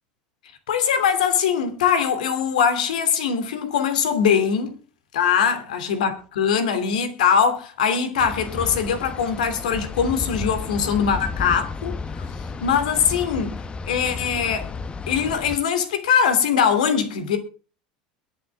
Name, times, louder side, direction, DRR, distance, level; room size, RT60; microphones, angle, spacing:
voice 1, 0.7-4.7 5.1-12.3 12.6-13.6 13.8-14.7 15.1-17.4, left 7 dB, 80° left, 2.9 m, -22 dB
sound 1, 8.2-15.6, left 4 dB, 25° left, 1.2 m, -32 dB
22.5 x 7.8 x 3.6 m
hypercardioid pair, 80°, 4 cm